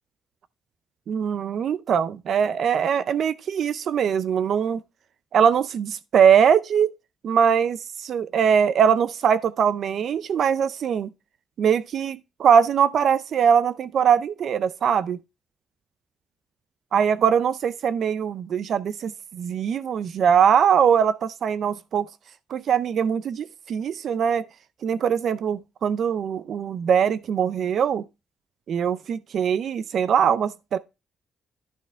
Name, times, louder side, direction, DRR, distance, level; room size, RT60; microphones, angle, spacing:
voice 1, 1.1-4.8 5.3-6.9 7.2-11.1 11.6-15.2 16.9-22.1 22.5-24.4 24.8-28.0 28.7-30.8, right 7 dB, 50° right, 0.5 m, -22 dB
11.0 x 5.6 x 3.4 m
cardioid pair, 170°, 0 cm